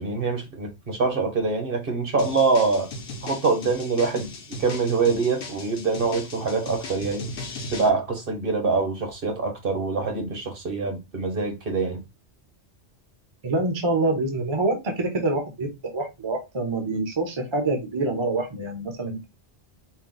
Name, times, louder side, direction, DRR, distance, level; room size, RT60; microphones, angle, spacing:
voice 1, 0.0-2.9 3.2-4.3 4.6-7.3 7.7-12.0, right 4 dB, 55° right, 1.3 m, -24 dB
sound 1, 2.2-7.9, left 2 dB, 60° left, 1.0 m, -37 dB
voice 2, 13.4-19.3, right 2 dB, 30° right, 0.8 m, -26 dB
4.5 x 2.2 x 3.9 m
omnidirectional pair, 1.2 m